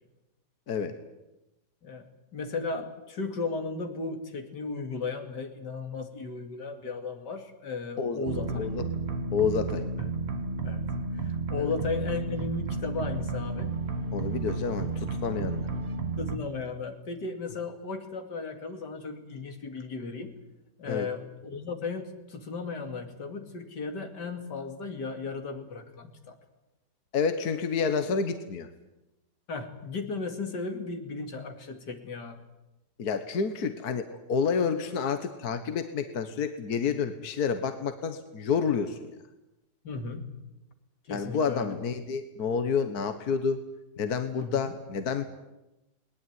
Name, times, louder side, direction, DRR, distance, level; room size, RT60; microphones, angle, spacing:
voice 1, 1.8-8.7 10.0-10.1 10.6-10.9 11.1-13.7 16.2-20.3 20.8-26.4 29.5-32.4 39.8-40.3 41.0-41.7 44.3-44.7, left 4 dB, 90° left, 6 dB, 3.0 m, -35 dB
sound 1, 8.3-16.4, right 3 dB, 40° right, 1.7 m, -32 dB
voice 2, 8.6-8.9 9.3-9.8 11.6-11.7 14.1-15.7 20.8-21.1 27.1-28.7 33.0-39.1 41.1-43.6 44.0-45.2, left 6 dB, 65° left, 9 dB, 1.8 m, -29 dB
20.0 x 20.0 x 9.5 m, 0.96 s
omnidirectional pair, 1.8 m